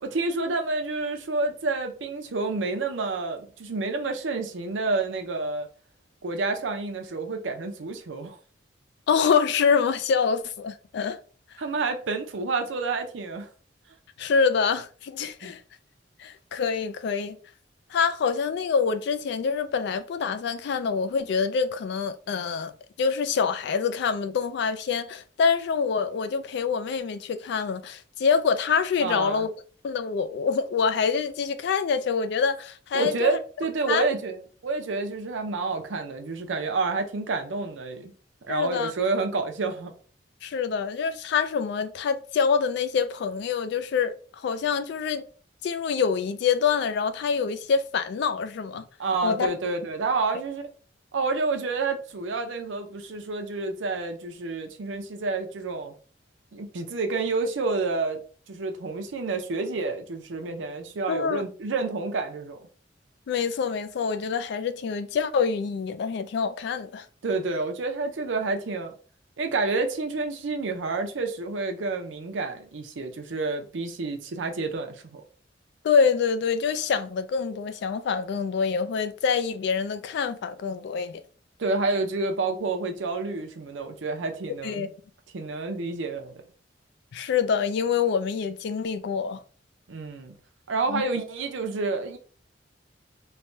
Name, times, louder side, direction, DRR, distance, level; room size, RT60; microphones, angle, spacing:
voice 1, 0.0-5.7 6.2-8.4 11.6-13.5 15.4-15.5 29.0-29.5 32.9-38.1 38.4-39.9 49.0-50.7 51.1-55.9 56.5-58.2 58.5-62.7 67.2-68.9 69.4-75.2 81.6-84.9 85.3-86.3 89.9-90.3 90.7-92.2, right 3 dB, 85° right, 0.6 m, -29 dB
voice 2, 9.1-11.2 14.2-15.6 16.2-17.4 17.9-22.7 23.0-29.5 29.8-33.3 33.9-34.0 38.5-38.9 40.4-45.2 45.6-48.9 49.2-49.5 61.1-61.4 63.3-67.1 75.8-81.2 84.6-84.9 87.1-89.4 90.9-91.0, left 6 dB, 65° left, 0.3 m, -26 dB
3.2 x 2.2 x 2.6 m
head